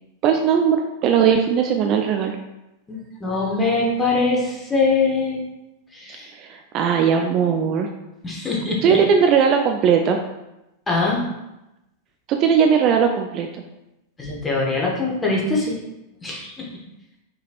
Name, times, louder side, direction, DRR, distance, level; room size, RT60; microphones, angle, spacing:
voice 1, 0.2-2.4 6.3-7.9 8.8-10.2 12.3-13.5, right 7 dB, 35° right, 4 dB, 0.4 m, -18 dB
voice 2, 2.9-5.4 5.9-6.3 8.2-9.0 10.9-11.2 14.2-15.8 16.2-16.7, left 3 dB, 15° left, -3 dB, 1.2 m, -22 dB
5.4 x 3.3 x 2.5 m, 0.92 s
figure-of-eight pair, 90°, 0 cm